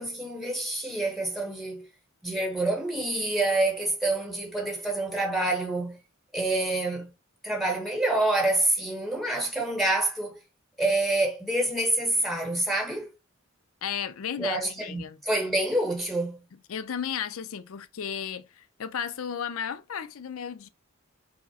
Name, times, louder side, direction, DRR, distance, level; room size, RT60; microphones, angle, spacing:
voice 1, 0.0-1.9 2.2-6.0 6.3-7.1 7.4-10.4 10.8-13.1 14.4-16.4, right 2 dB, ahead, 0.9 m, -27 dB
voice 2, 13.8-15.2 16.7-20.7, left 8 dB, 80° left, 0.5 m, -34 dB
4.8 x 2.0 x 4.1 m
head